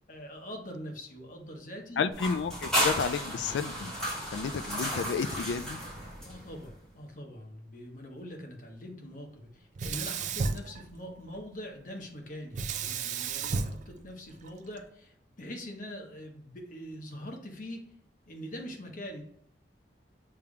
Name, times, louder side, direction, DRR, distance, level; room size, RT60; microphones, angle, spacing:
voice 1, 0.1-2.0 6.2-17.9 18.3-19.2, equal, 50° left, 1.0 m, -43 dB
voice 2, 2.0-3.9 4.3-5.8, left 5 dB, 75° left, 0.3 m, -31 dB
sound 1, 2.1-6.7, equal, 5° left, 1.8 m, -33 dB
Sink (filling or washing), 9.8-11.4 12.5-14.8, right 4 dB, 45° right, 0.3 m, -34 dB
6.9 x 3.4 x 2.3 m
head